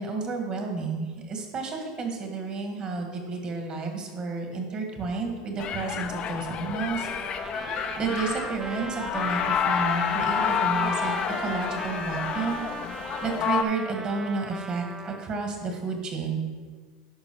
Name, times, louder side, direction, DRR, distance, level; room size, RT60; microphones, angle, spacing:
voice 1, 0.0-7.1 8.0-12.6 13.2-16.4, right 4 dB, 35° right, 2 dB, 1.9 m, -31 dB
sound 1, 5.6-13.6, left 8 dB, 40° left, 0.6 m, -29 dB
Trumpet, 7.0-15.3, right 3 dB, 15° right, 0.6 m, -37 dB
11.5 x 5.3 x 4.8 m, 1.5 s
supercardioid pair, 110°, 3 cm